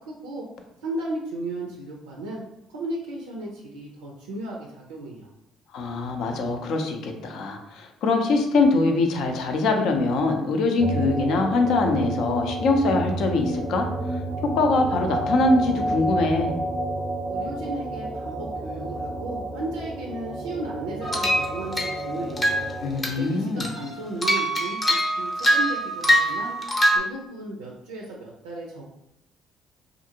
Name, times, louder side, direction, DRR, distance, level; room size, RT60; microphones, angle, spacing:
voice 1, 0.1-0.4 0.8-2.4 2.7-5.3 17.3-22.6 23.2-26.5 26.9-28.8, right 2 dB, 90° right, -2 dB, 0.4 m, -35 dB
voice 2, 5.7-16.5 22.8-23.7, left 3 dB, 70° left, 4 dB, 0.5 m, -23 dB
sound 1, 10.8-23.0, right 2 dB, 30° right, 0.5 m, -30 dB
sound 2, 21.0-22.0 22.4-22.7 23.0-23.3 23.6-27.0, equal, 25° left, 0.6 m, -23 dB
2.5 x 2.5 x 2.8 m, 0.83 s
hypercardioid pair, 55°, 0 cm